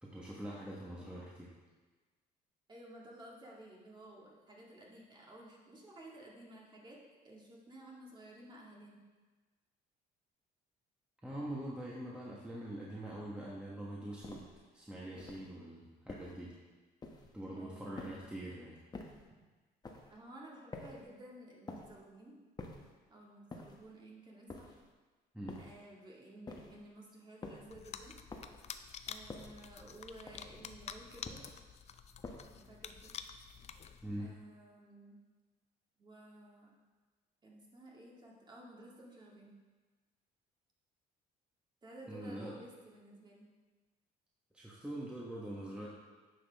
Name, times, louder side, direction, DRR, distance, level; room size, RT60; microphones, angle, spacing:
voice 1, 0.0-1.5 11.2-14.4 14.7-16.5 17.3-18.8 25.3-25.6 34.0-34.3 42.1-42.5 44.5-45.9, right 1 dB, 5° right, -5 dB, 1.3 m, -44 dB
voice 2, 2.7-7.0 7.2-9.0 17.6-18.2 20.1-22.4 23.1-24.8 25.6-28.2 29.1-31.4 32.5-33.1 34.2-35.2 36.0-36.7 37.4-39.5 41.8-43.5, right 1 dB, 25° right, -3 dB, 1.9 m, -54 dB
sound 1, 14.2-14.6 15.2-15.5 16.1-16.5 17.0-17.4 18.0-18.4 18.9-19.3 19.8-20.2 20.7-21.1 21.7-22.0 22.6-23.0 23.5-23.9 24.5-24.9 25.5-25.9 26.5-26.9 27.4-27.8 28.3-28.7 29.3-29.7 30.3-30.7 31.2-31.7 32.2-32.7, left 3 dB, 25° left, 1.0 m, -49 dB
sound 2, 27.7-34.3, left 7 dB, 40° left, 0.5 m, -49 dB
9.7 x 6.0 x 3.5 m, 1.3 s
cardioid pair, 110°, 17 cm